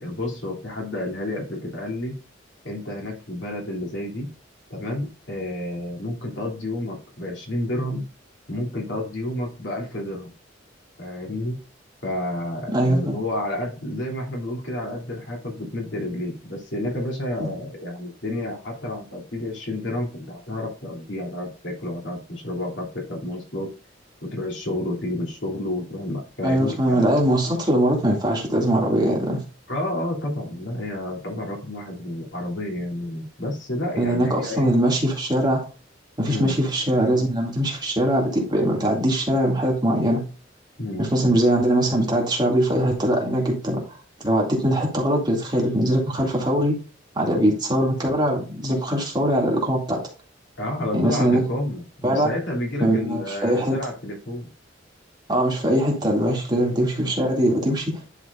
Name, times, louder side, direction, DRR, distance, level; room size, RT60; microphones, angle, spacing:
voice 1, 0.0-2.2 2.6-4.3 4.7-8.1 8.5-10.3 11.0-11.6 12.0-23.7 24.2-27.1 29.7-34.7 36.3-36.5 40.8-41.4 47.3-47.5 50.6-51.8 52.1-54.5, left 1 dB, 70° left, 2.9 m, -30 dB
voice 2, 12.7-13.2 17.4-17.5 26.4-29.4 34.0-35.6 36.2-40.2 41.0-43.8 44.2-46.7 47.1-50.0 50.9-51.4 52.0-52.3 52.8-53.7 55.3-58.0, right 1 dB, 25° right, 2.3 m, -21 dB
10.5 x 4.9 x 2.5 m
head